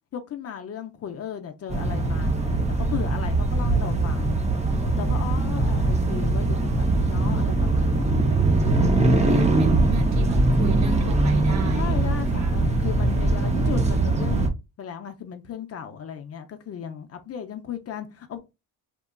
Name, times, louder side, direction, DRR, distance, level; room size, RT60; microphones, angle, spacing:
voice 1, 0.1-4.4 4.9-8.2 11.7-14.5 14.8-18.4, left 8 dB, 40° left, 0.5 m, -35 dB
sound 1, 1.7-14.5, right 2 dB, 20° right, 0.5 m, -22 dB
voice 2, 9.3-12.6, right 5 dB, 45° right, 0.8 m, -35 dB
2.9 x 2.3 x 2.2 m
supercardioid pair, 80°, 38 cm